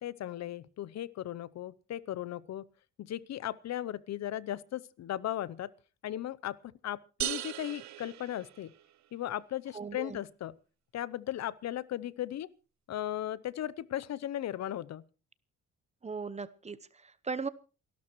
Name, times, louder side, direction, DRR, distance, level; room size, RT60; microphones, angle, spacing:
voice 1, 0.0-2.6 3.0-5.7 6.0-8.7 9.1-10.6 10.9-12.5 12.9-15.1, left 12 dB, 60° left, 0.7 m, -37 dB
sound 1, 7.2-9.1, right 13 dB, 65° right, 0.8 m, -38 dB
voice 2, 9.7-10.2 16.0-17.5, right 4 dB, 20° right, 0.9 m, -38 dB
28.5 x 12.5 x 3.1 m
cardioid pair, 90°, 30 cm